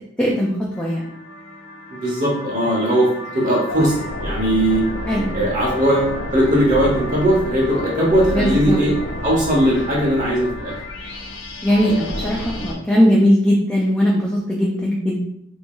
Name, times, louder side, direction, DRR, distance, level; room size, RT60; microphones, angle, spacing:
voice 1, 0.2-1.1 5.1-5.3 8.3-8.8 11.6-15.2, equal, 5° left, -4 dB, 0.4 m, -19 dB
sound 1, 0.7-12.7, left 1 dB, 60° left, 0.6 m, -30 dB
voice 2, 1.9-3.9 4.2-4.8 5.3-8.9 9.2-10.7, right 1 dB, 40° right, -4 dB, 0.9 m, -19 dB
2.9 x 2.7 x 3.6 m, 0.72 s
head